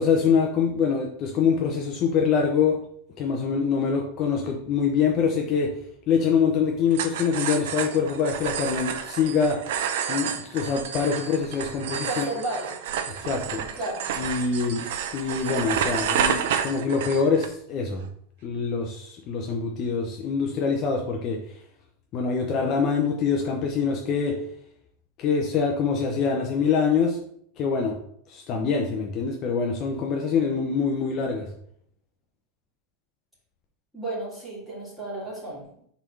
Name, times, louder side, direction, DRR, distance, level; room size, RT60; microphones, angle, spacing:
voice 1, 0.0-2.8 3.2-5.7 6.1-9.6 10.1-12.2 13.1-13.6 14.2-14.8 15.1-18.0 18.4-21.4 22.1-24.4 25.2-27.2 27.6-27.9 28.3-31.5, left 5 dB, 35° left, 1 dB, 0.8 m, -24 dB
sound 1, 6.9-17.5, right 8 dB, 75° right, 0.7 m, -30 dB
voice 2, 12.1-12.7 13.6-14.1 33.9-35.6, right 2 dB, 5° right, -8 dB, 2.7 m, -33 dB
4.6 x 4.2 x 5.4 m, 0.67 s
supercardioid pair, 155°, 0 cm